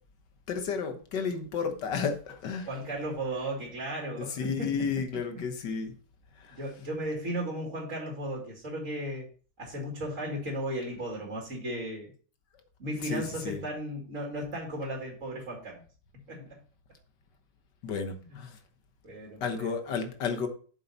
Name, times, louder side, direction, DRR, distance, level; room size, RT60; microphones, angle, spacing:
voice 1, 0.5-2.7 4.2-5.9 6.4-6.6 13.0-13.6 16.4-16.5 17.8-18.6 19.4-20.5, left 5 dB, 85° left, 1.9 m, -32 dB
voice 2, 2.7-4.7 6.5-9.3 9.6-12.1 12.8-15.8 16.3-16.6 19.0-19.8, right 1 dB, 45° right, 2.7 m, -35 dB
8.2 x 6.9 x 4.2 m
omnidirectional pair, 1.8 m